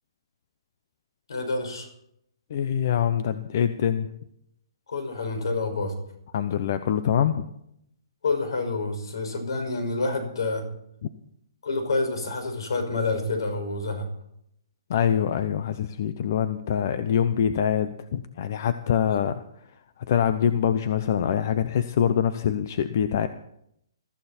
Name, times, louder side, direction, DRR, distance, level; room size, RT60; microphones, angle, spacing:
voice 1, 1.3-1.9 4.9-5.9 8.2-10.6 11.6-14.0 19.1-19.2, left 3 dB, 70° left, 6 dB, 5.8 m, -28 dB
voice 2, 2.5-4.1 6.3-7.5 14.9-19.4 20.1-23.3, left 8 dB, 40° left, 11 dB, 0.8 m, -24 dB
21.5 x 14.0 x 4.4 m, 0.73 s
hypercardioid pair, 175°, 3 cm